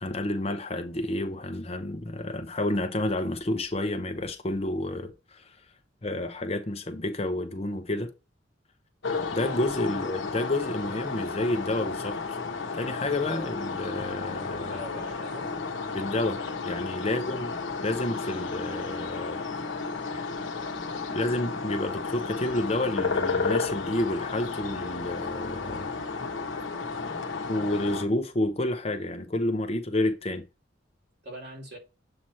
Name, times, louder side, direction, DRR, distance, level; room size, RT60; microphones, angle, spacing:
voice 1, 0.0-5.6 6.0-8.1 9.3-12.4 12.7-14.8 15.9-16.4 16.6-17.5 17.8-19.4 20.1-20.2 21.1-25.9 27.1-27.2 27.5-30.4, left 1 dB, 30° left, 0.7 m, -30 dB
sound 1, 9.0-28.1, left 4 dB, 75° left, 1.0 m, -33 dB
voice 2, 14.6-15.5 17.0-17.3 31.2-31.8, equal, 55° right, 2.6 m, -42 dB
7.6 x 3.0 x 4.3 m
head